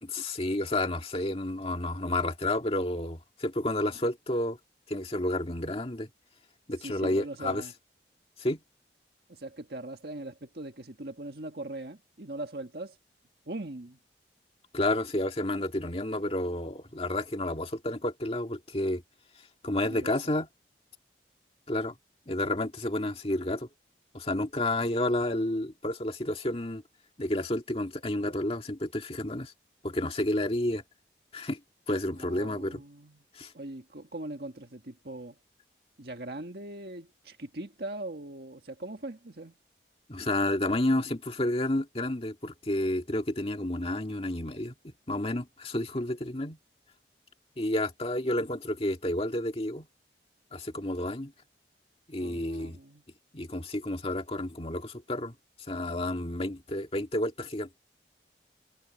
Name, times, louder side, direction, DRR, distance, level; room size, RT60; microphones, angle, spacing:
voice 1, 0.0-4.6 4.9-6.1 6.7-7.6 8.4-8.6 14.7-19.0 19.6-20.5 21.7-21.9 22.3-23.7 24.1-26.8 27.2-29.5 29.8-30.8 31.3-31.6 31.9-32.8 33.3-33.5 40.1-46.6 47.6-49.9 50.5-51.3 52.1-52.8 53.3-55.3 55.7-57.8, left 1 dB, 35° left, 2.0 m, -30 dB
voice 2, 6.8-7.7 9.3-13.0 13.5-14.0 19.8-20.2 32.1-33.2 33.5-35.4 36.0-39.6 52.2-53.0, right 2 dB, 60° right, 1.8 m, -40 dB
head